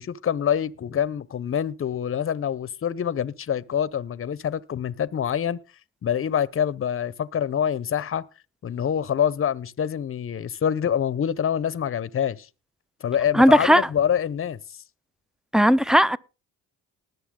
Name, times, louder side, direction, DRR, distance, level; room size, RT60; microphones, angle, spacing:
voice 1, 0.0-5.6 6.0-8.3 8.6-12.5 13.0-14.6, left 9 dB, 40° left, 0.7 m, -26 dB
voice 2, 13.3-13.9 15.5-16.2, equal, ahead, 0.5 m, -16 dB
19.5 x 6.9 x 3.7 m
cardioid pair, 75°, 36 cm